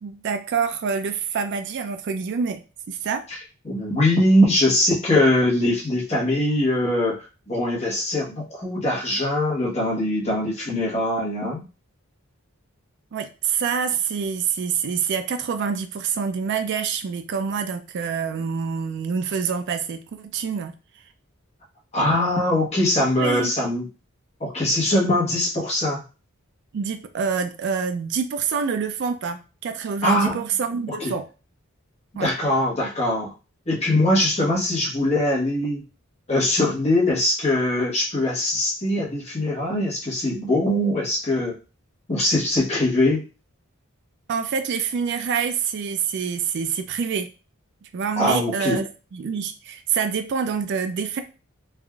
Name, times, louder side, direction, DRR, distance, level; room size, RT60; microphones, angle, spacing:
voice 1, 0.0-2.6 2.9-3.2 13.1-20.7 23.2-23.5 26.7-31.3 32.2-32.3 44.3-47.3 47.8-51.2, right 6 dB, 55° right, 9 dB, 0.4 m, -26 dB
voice 2, 3.6-11.6 21.9-23.9 24.4-26.0 30.0-30.4 31.0-31.1 32.1-33.3 33.7-35.8 36.3-41.6 42.1-43.2 48.2-48.8, left 1 dB, 30° left, -4 dB, 1.0 m, -22 dB
3.3 x 2.4 x 2.3 m, 0.32 s
head